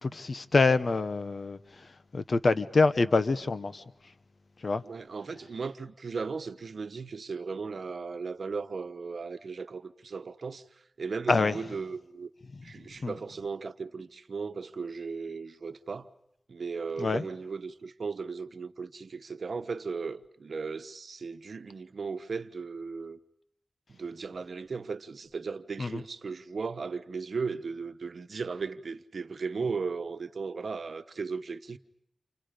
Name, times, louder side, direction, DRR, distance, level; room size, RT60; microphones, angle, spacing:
voice 1, 0.0-1.6 2.1-3.8 4.6-4.8 11.3-11.5 13.0-13.1 17.0-17.2 25.8-26.0, left 3 dB, 65° left, 1.1 m, -25 dB
voice 2, 4.8-10.6 11.0-12.3 12.6-16.1 16.5-23.2 23.9-31.8, right 4 dB, 75° right, 1.1 m, -36 dB
29.5 x 27.0 x 5.2 m
cardioid pair, 45°, 0 cm